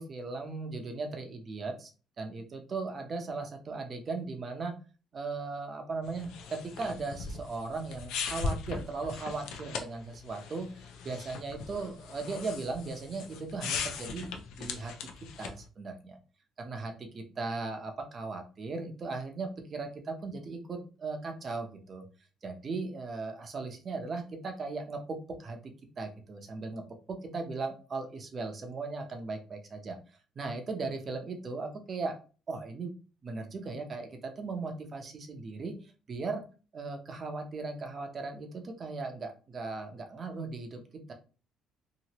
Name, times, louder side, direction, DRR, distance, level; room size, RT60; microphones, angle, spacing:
voice 1, 0.0-1.9 2.2-4.8 5.1-10.7 11.0-14.3 14.6-14.9 15.4-16.2 16.6-22.0 22.4-26.8 27.2-30.0 30.4-32.2 32.5-32.9 33.2-36.4 36.7-40.8 41.1-41.2, right 3 dB, 35° right, 5 dB, 0.6 m, -37 dB
sound 1, 6.0-15.6, left 5 dB, 80° left, 0.5 m, -39 dB
2.9 x 2.5 x 2.9 m, 0.35 s
cardioid pair, 135°, 0 cm